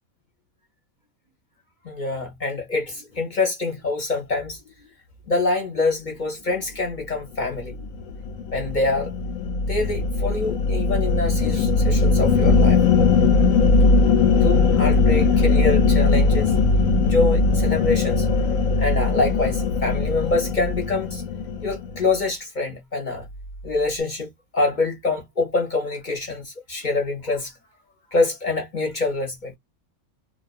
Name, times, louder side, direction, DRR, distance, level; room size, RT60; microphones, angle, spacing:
voice 1, 1.8-4.6 5.3-7.8 8.5-9.1 9.6-12.8 14.3-16.5 17.0-18.3 18.8-21.2 21.6-23.3 23.6-27.5 28.1-29.5, left 3 dB, 40° left, 0.7 m, -25 dB
sound 1, 7.6-22.1, left 4 dB, 70° left, 0.9 m, -19 dB
2.3 x 2.3 x 2.4 m
omnidirectional pair, 1.6 m